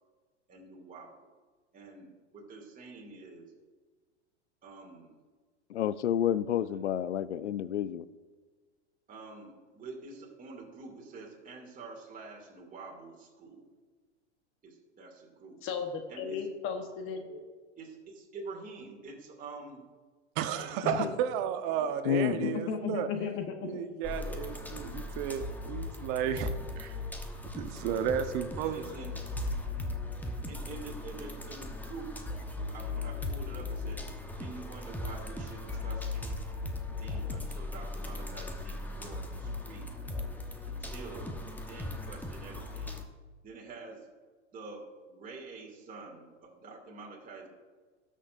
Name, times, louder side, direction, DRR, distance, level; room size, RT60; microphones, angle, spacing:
voice 1, 0.5-1.3 1.7-3.5 4.6-5.1 9.1-13.7 14.6-15.6 16.1-16.5 17.8-19.8 20.6-21.1 21.6-22.0 28.6-29.2 30.5-32.1 32.7-34.0 34.4-36.4 37.0-40.0 40.6-41.4 41.7-43.0 43.4-44.1 44.5-47.5, right 3 dB, 25° right, -2 dB, 2.5 m, -47 dB
voice 2, 5.7-8.1 22.0-22.6, left 10 dB, 80° left, 16 dB, 0.5 m, -29 dB
voice 3, 15.6-17.4 20.8-21.1 22.3-23.7, left 6 dB, 35° left, 5 dB, 1.2 m, -35 dB
voice 4, 20.3-23.1 23.6-27.0 27.5-28.8, right 9 dB, 50° right, 8 dB, 1.1 m, -33 dB
sound 1, 24.0-43.0, left 2 dB, 5° left, 1.0 m, -38 dB
18.0 x 6.5 x 2.6 m, 1.4 s
hypercardioid pair, 95°, 35 cm